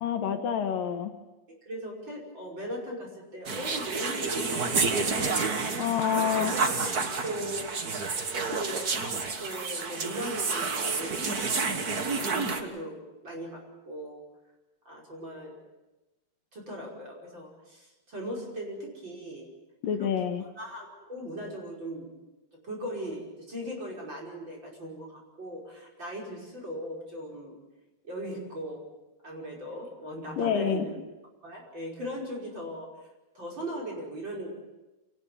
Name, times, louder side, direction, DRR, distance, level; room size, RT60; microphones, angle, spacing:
voice 1, 0.0-1.1 5.8-6.6 19.8-20.4 30.4-30.8, left 8 dB, 75° left, 6 dB, 2.9 m, -27 dB
voice 2, 1.6-5.8 6.2-7.7 8.3-14.2 14.9-15.6 16.5-19.5 20.0-20.1 20.6-22.1 22.6-27.6 28.0-28.9 29.2-30.9 31.4-32.9 33.3-34.5, equal, 30° right, -1 dB, 6.0 m, -39 dB
sound 1, 3.5-12.6, right 4 dB, 55° right, 1.0 m, -30 dB
27.0 x 19.0 x 7.2 m, 1.0 s
omnidirectional pair, 4.2 m